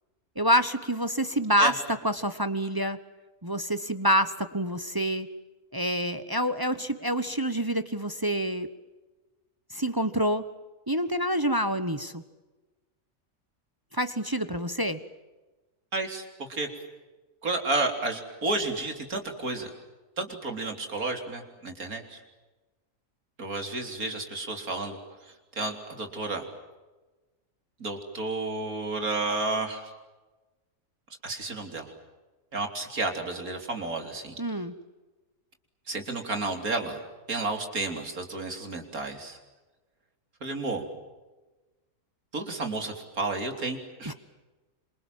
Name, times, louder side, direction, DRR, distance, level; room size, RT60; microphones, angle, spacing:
voice 1, 0.4-3.0 3.4-5.3 5.7-8.7 9.7-10.4 10.9-12.2 13.9-15.0 34.4-34.7 44.0-44.1, equal, 15° right, 11 dB, 1.1 m, -27 dB
voice 2, 15.9-16.2 16.5-16.7 17.4-19.7 20.2-22.2 23.4-25.0 25.6-26.5 27.8-29.8 31.2-31.9 32.5-34.3 35.9-37.0 37.3-39.4 40.4-40.8 42.3-44.1, right 2 dB, 70° right, 4 dB, 4.2 m, -31 dB
28.0 x 27.0 x 7.6 m, 1.2 s
omnidirectional pair, 1.6 m